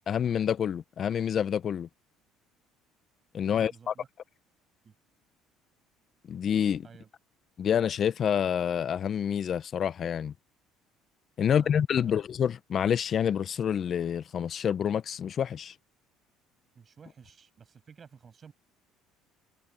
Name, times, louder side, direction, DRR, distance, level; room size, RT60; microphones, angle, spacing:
voice 1, 0.1-1.9 3.3-3.9 6.3-6.9 7.6-10.3 11.4-15.7, left 8 dB, 50° left, 1.0 m, -28 dB
voice 2, 3.5-4.1 4.8-4.9 6.8-7.1 11.4-12.2 16.7-18.5, right 6 dB, 40° right, 6.6 m, -53 dB
supercardioid pair, 75°, 0 cm